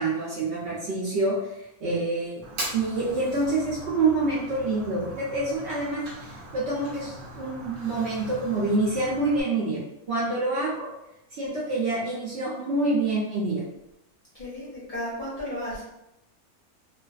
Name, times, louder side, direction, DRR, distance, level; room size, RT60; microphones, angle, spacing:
voice 1, 0.0-1.4 1.8-2.3 2.7-9.8 10.1-10.9 11.3-13.6, right 2 dB, 60° right, -6 dB, 0.7 m, -27 dB
Fire, 2.4-9.4, right 1 dB, 85° right, 1.1 m, -40 dB
voice 2, 14.3-15.8, left 1 dB, 45° left, -8 dB, 0.6 m, -34 dB
2.4 x 2.4 x 2.3 m, 0.89 s
omnidirectional pair, 1.5 m